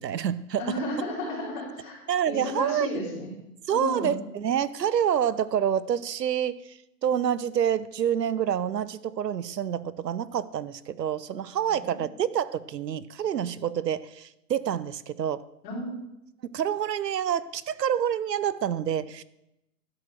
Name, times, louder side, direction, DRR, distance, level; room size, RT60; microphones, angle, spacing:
voice 1, 0.0-0.8 2.1-3.0 3.7-6.6 7.0-15.4 16.5-19.2, right 9 dB, 80° right, 17 dB, 0.8 m, -27 dB
voice 2, 0.6-2.0 2.2-3.3 3.7-4.2 11.7-12.1 15.6-16.0, left 1 dB, 30° left, -3 dB, 4.4 m, -33 dB
11.5 x 6.8 x 7.3 m, 0.86 s
hypercardioid pair, 165°, 49 cm